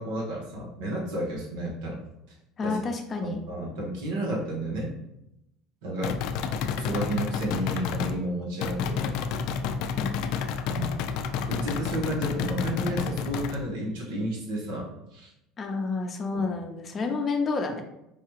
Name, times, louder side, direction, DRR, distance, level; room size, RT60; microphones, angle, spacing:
voice 1, 0.0-2.0 2.6-2.8 3.2-4.9 5.8-6.1 6.8-9.1 10.7-11.0 11.5-14.9 15.1-15.3 16.3-16.4, right 1 dB, 85° right, -3 dB, 1.2 m, -31 dB
voice 2, 2.6-3.4 10.0-10.1 15.6-17.8, left 4 dB, 30° left, 3 dB, 0.6 m, -29 dB
sound 1, 6.0-8.2 8.6-13.6, left 6 dB, 70° left, 0.3 m, -30 dB
4.7 x 2.3 x 3.0 m, 0.85 s
supercardioid pair, 120°, 0 cm